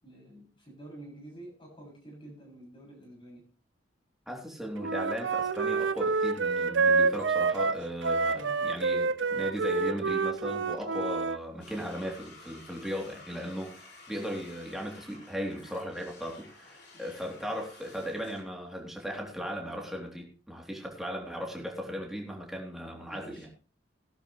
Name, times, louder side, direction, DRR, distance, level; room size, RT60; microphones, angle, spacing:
voice 1, 0.0-3.5 8.3-8.7 16.9-17.0 23.1-23.5, right 1 dB, 30° left, 7.1 m, -48 dB
voice 2, 4.3-23.5, equal, ahead, 3.3 m, -37 dB
Wind instrument woodwind instrument, 4.8-11.4, right 4 dB, 85° right, 0.6 m, -28 dB
sound 1, 11.6-18.4, left 3 dB, 60° left, 4.6 m, -52 dB
16.0 x 12.0 x 3.3 m
head